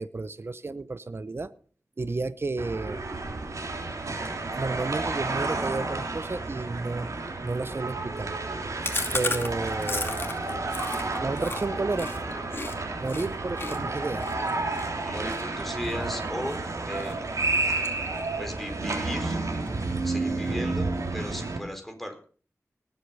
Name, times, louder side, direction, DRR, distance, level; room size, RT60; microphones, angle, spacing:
voice 1, 0.0-1.5 2.0-3.0 4.6-7.1 7.4-8.3 9.1-10.1 11.2-12.1 13.0-14.5, right 3 dB, 45° right, 14 dB, 0.8 m, -31 dB
sound 1, 2.6-21.6, right 3 dB, 80° right, 3.4 m, -31 dB
Chewing mastication, 8.8-12.7 13.1-13.3 13.6-16.6 17.0-17.3 17.6-18.4 18.7-18.8 19.1-19.2 19.5-20.1, left 2 dB, 45° left, 2.5 m, -34 dB
voice 2, 15.0-17.4 18.4-19.4 20.0-22.2, equal, 5° left, 4 dB, 4.4 m, -36 dB
19.0 x 8.3 x 5.5 m, 0.41 s
wide cardioid pair, 75°, 5 cm